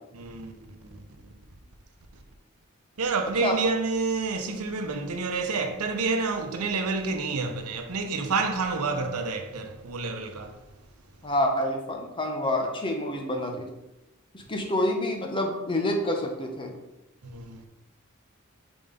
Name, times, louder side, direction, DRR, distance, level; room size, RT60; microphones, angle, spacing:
voice 1, 0.1-1.0 2.1-2.2 3.0-10.6 17.2-17.7, right 4 dB, 90° right, 0.7 m, -29 dB
voice 2, 11.2-13.7 14.3-16.7, left 1 dB, 25° left, 0.8 m, -27 dB
4.8 x 3.8 x 5.2 m
head